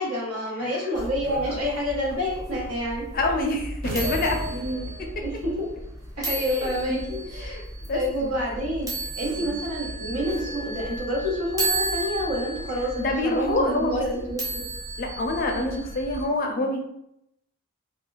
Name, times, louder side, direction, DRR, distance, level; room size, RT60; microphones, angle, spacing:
voice 1, 0.0-3.1 4.5-4.9 5.2-5.7 6.2-7.6 7.9-14.6 15.5-15.8, equal, 80° right, -3 dB, 1.0 m, -28 dB
sound 1, 0.9-16.2, right 2 dB, 15° right, 0.6 m, -34 dB
voice 2, 3.1-4.4 6.5-7.0 7.4-8.3 9.3-9.4 13.0-14.0 15.0-16.8, left 2 dB, 40° left, 2 dB, 0.4 m, -27 dB
sound 2, 3.8-5.4, right 1 dB, 60° right, 0.4 m, -33 dB
2.3 x 2.3 x 3.1 m, 0.79 s
head